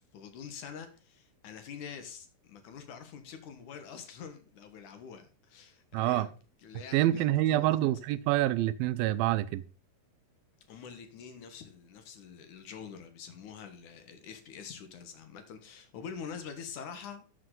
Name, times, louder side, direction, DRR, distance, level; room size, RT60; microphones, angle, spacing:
voice 1, 0.1-6.3 6.6-7.8 10.7-17.2, left 6 dB, 65° left, 2.8 m, -45 dB
voice 2, 5.9-6.3 6.9-9.6, right 14 dB, 90° right, 2.5 m, -27 dB
13.0 x 8.0 x 3.9 m
omnidirectional pair, 4.1 m